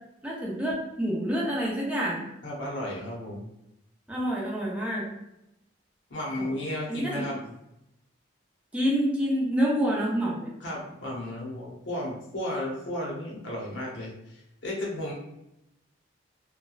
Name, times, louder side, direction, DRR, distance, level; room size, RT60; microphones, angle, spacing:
voice 1, 0.2-2.3 4.1-5.1 6.4-6.6 6.9-7.2 8.7-10.5, equal, 5° right, -5 dB, 0.6 m, -27 dB
voice 2, 2.4-3.5 6.1-7.4 10.6-15.1, left 1 dB, 70° left, -3 dB, 0.8 m, -34 dB
2.9 x 2.2 x 2.3 m, 0.85 s
head